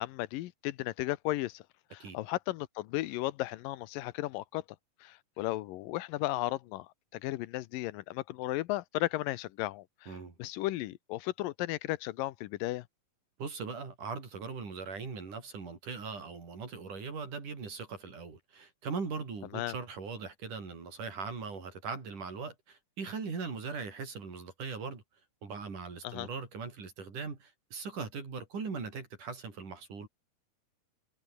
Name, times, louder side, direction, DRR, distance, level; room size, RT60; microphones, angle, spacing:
voice 1, 0.0-1.6 1.9-4.6 5.0-12.9 19.5-19.8 26.0-26.3, left 17 dB, 85° left, 2.5 m, -35 dB
voice 2, 10.1-10.4 13.4-25.0 25.4-30.1, right 5 dB, 65° right, 6.6 m, -40 dB
omnidirectional pair, 3.9 m